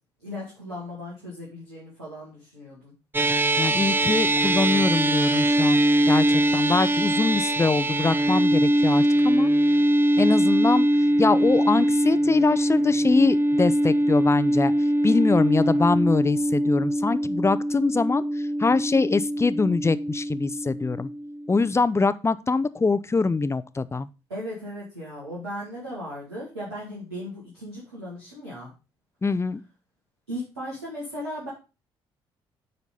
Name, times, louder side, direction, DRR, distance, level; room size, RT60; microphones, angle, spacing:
voice 1, 0.2-2.9 7.0-7.3 24.3-28.7 30.3-31.5, equal, 90° right, -7 dB, 2.2 m, -37 dB
sound 1, 3.1-21.7, right 1 dB, 15° right, 0.7 m, -22 dB
voice 2, 3.6-9.5 10.2-14.7 15.0-18.2 18.6-21.1 21.5-24.1 29.2-29.6, left 4 dB, 20° left, 14 dB, 0.6 m, -23 dB
9.4 x 4.1 x 5.2 m, 0.31 s
hypercardioid pair, 45°, 13 cm